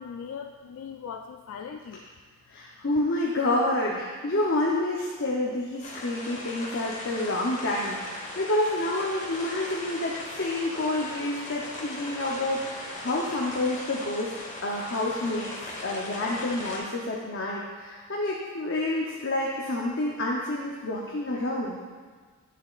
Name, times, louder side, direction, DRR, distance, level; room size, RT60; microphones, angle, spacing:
voice 1, 0.0-2.0, left 6 dB, 85° left, 4 dB, 0.3 m, -39 dB
voice 2, 2.5-14.3 14.6-15.5 15.8-21.8, left 1 dB, 55° left, -3 dB, 0.7 m, -28 dB
sound 1, 5.8-16.8, left 1 dB, 35° left, 1.3 m, -39 dB
8.9 x 7.0 x 2.4 m, 1.5 s
head